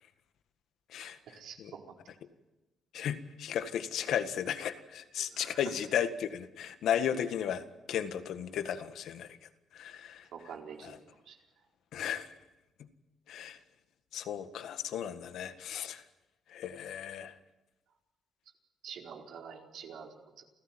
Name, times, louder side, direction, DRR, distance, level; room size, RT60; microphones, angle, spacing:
voice 1, 1.0-1.8 5.4-5.6 10.3-11.0 11.3-11.4 18.8-20.4, right 7 dB, 75° right, 1 dB, 4.5 m, -47 dB
voice 2, 2.9-7.6 7.9-9.3 9.7-10.2 10.8-11.0 11.9-12.3 13.3-13.6 14.1-16.0 16.5-17.3, left 9 dB, 75° left, 10 dB, 1.7 m, -34 dB
28.0 x 15.5 x 9.1 m, 1.0 s
cardioid pair, 90°, 0 cm